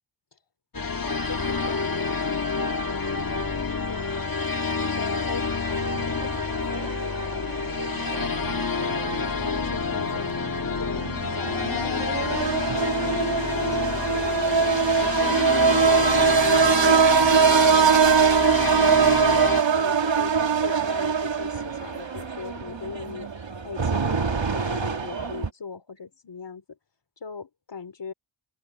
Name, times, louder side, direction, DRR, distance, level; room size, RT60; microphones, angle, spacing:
sound 1, 0.7-19.6, left 4 dB, 50° left, 1.7 m, -28 dB
voice 1, 0.8-4.3 4.8-7.6 8.1-10.3 10.7-13.2 13.6-19.1 19.5-23.3 23.6-26.8 27.2-28.1, left 5 dB, 70° left, 3.0 m, -40 dB
sound 2, 5.7-25.5, right 5 dB, 75° right, 2.1 m, -23 dB
wide cardioid pair, 65°, 45 cm